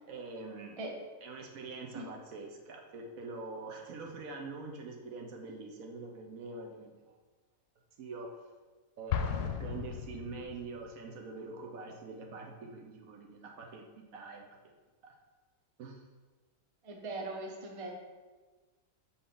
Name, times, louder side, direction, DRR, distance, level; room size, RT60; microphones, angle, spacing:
voice 1, 0.1-0.8 1.2-7.2 8.0-8.3 9.0-13.9 14.1-14.7 15.0-15.1 15.8-16.0, right 3 dB, 65° right, 1 dB, 1.2 m, -44 dB
Explosion, 9.1-10.9, left 8 dB, 85° left, 1.1 m, -35 dB
voice 2, 16.8-17.9, right 2 dB, 30° right, 0 dB, 0.6 m, -40 dB
7.0 x 4.0 x 3.8 m, 1.3 s
omnidirectional pair, 1.7 m